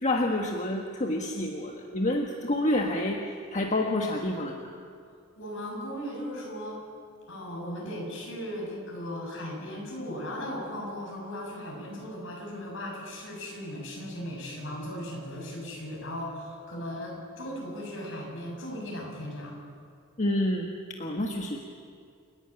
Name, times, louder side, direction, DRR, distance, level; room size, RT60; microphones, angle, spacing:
voice 1, 0.0-3.2 3.5-4.7 16.7-16.8 20.2-20.7 21.0-21.6, left 1 dB, 35° left, 1 dB, 1.4 m, -28 dB
voice 2, 5.4-6.9 7.3-19.5, equal, 65° left, -2 dB, 7.8 m, -37 dB
30.0 x 11.5 x 8.9 m, 2.3 s
head